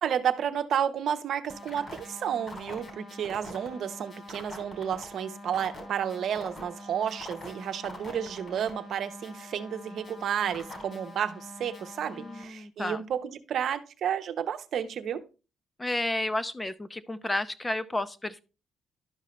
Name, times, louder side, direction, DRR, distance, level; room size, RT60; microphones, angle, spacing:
voice 1, 0.0-15.2, right 8 dB, 65° right, 0.8 m, -31 dB
sound 1, 1.5-12.4, left 1 dB, 45° left, 3.2 m, -44 dB
voice 2, 12.1-13.0 15.8-18.4, left 1 dB, 15° left, 0.6 m, -32 dB
12.0 x 5.5 x 3.1 m
cardioid pair, 90°, 0 cm